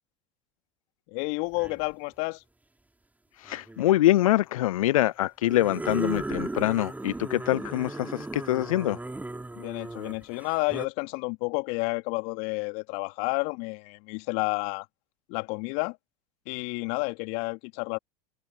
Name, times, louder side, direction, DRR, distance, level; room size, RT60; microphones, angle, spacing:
voice 1, 1.1-2.4 9.5-14.9 15.3-16.0 16.5-18.0, left 30 dB, 60° left, 2.9 m, -30 dB
sound 1, 1.5-1.9 3.4-4.0 5.4-10.9, right 2 dB, 10° right, 4.4 m, -36 dB
voice 2, 3.4-9.0, left 15 dB, 75° left, 0.4 m, -24 dB
hypercardioid pair, 80°, 18 cm